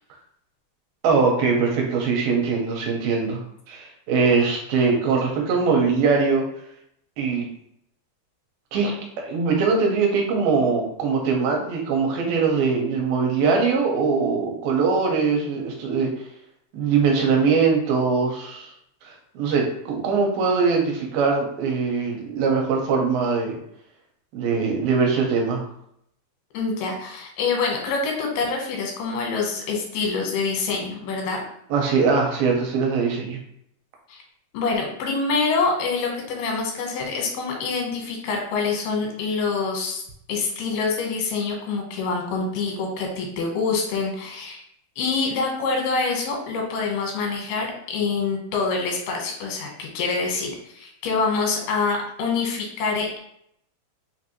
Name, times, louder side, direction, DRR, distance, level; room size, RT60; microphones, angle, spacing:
voice 1, 1.0-6.5 7.2-7.5 8.7-16.1 16.7-18.7 19.0-23.6 24.3-25.6 31.7-33.4, right 5 dB, 80° right, 0 dB, 2.5 m, -22 dB
voice 2, 26.5-31.4 34.1-34.2 34.5-40.0 40.3-44.6 45.0-50.5 50.7-53.2, left 4 dB, 90° left, 1 dB, 3.0 m, -26 dB
6.1 x 2.6 x 2.9 m, 0.72 s
omnidirectional pair, 4.3 m